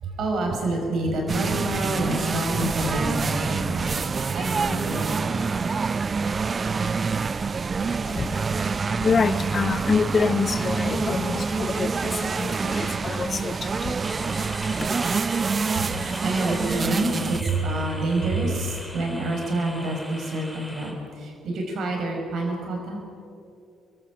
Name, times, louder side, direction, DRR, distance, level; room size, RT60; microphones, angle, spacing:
voice 1, 0.0-5.5 15.7-23.0, right 2 dB, 50° right, 5.4 m, -28 dB
sound 1, 1.3-17.4, right 5 dB, 35° right, 0.6 m, -26 dB
voice 2, 7.8-15.1, left 5 dB, 35° left, 0.7 m, -27 dB
sound 2, 14.0-20.9, equal, 5° right, 4.3 m, -39 dB
28.5 x 22.5 x 5.2 m
figure-of-eight pair, 45°, 0 cm